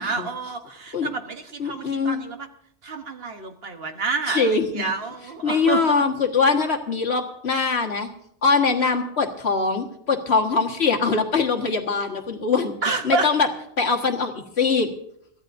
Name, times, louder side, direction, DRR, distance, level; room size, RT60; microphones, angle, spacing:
voice 1, 0.0-2.5 2.8-6.0 12.8-13.3, right 4 dB, 55° right, 6 dB, 1.3 m, -29 dB
voice 2, 1.6-2.2 4.3-4.9 5.4-8.1 8.4-12.7 13.0-13.5 13.8-14.9, left 4 dB, 60° left, 2 dB, 1.8 m, -22 dB
23.5 x 14.5 x 2.6 m, 0.71 s
omnidirectional pair, 1.2 m